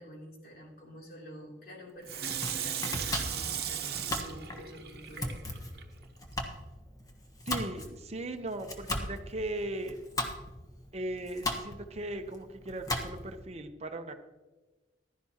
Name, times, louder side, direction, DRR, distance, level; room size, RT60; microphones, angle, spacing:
voice 1, 0.0-5.4, equal, 55° left, -1 dB, 3.0 m, -48 dB
Water tap faucet / Sink (filling or washing), 2.0-5.8 6.3-6.4, right 9 dB, 60° right, 1.0 m, -36 dB
Domestic sounds home sounds, 2.1-13.4, left 1 dB, 20° left, 1.3 m, -38 dB
voice 2, 7.5-10.0 10.9-14.1, right 1 dB, 35° right, 6 dB, 0.8 m, -38 dB
15.0 x 12.0 x 2.9 m, 1.2 s
head